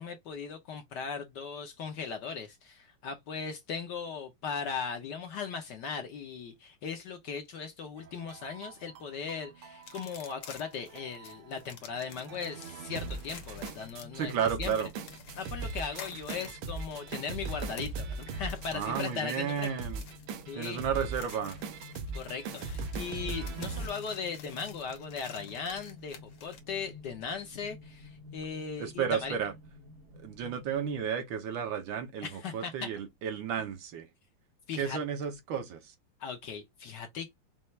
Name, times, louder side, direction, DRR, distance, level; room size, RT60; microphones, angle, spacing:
voice 1, 0.0-14.7 15.4-19.7 20.5-20.8 22.1-29.4 32.2-32.9 34.7-35.0 36.2-37.4, left 6 dB, 65° left, 1.2 m, -38 dB
sound 1, 8.0-23.9, right 4 dB, 85° right, 1.7 m, -40 dB
sound 2, 9.8-26.6, left 7 dB, 90° left, 2.0 m, -51 dB
sound 3, 13.5-31.0, left 2 dB, 45° right, 0.9 m, -52 dB
voice 2, 14.2-14.9 18.7-20.0 20.5-21.6 28.8-29.5 30.2-34.1 34.8-35.9, right 8 dB, 70° right, 1.6 m, -33 dB
5.6 x 2.4 x 3.1 m
omnidirectional pair, 2.4 m